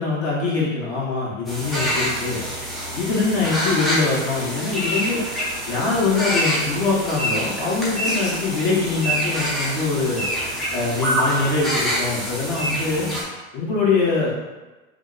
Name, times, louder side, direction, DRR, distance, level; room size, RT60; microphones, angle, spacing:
voice 1, 0.0-2.4 2.9-5.2 5.7-10.3 10.7-13.1 13.5-14.3, left 4 dB, 45° left, -5 dB, 1.0 m, -23 dB
sound 1, 1.5-13.2, equal, ahead, 0.5 m, -26 dB
2.6 x 2.1 x 3.8 m, 1.1 s
hypercardioid pair, 115°, 41 cm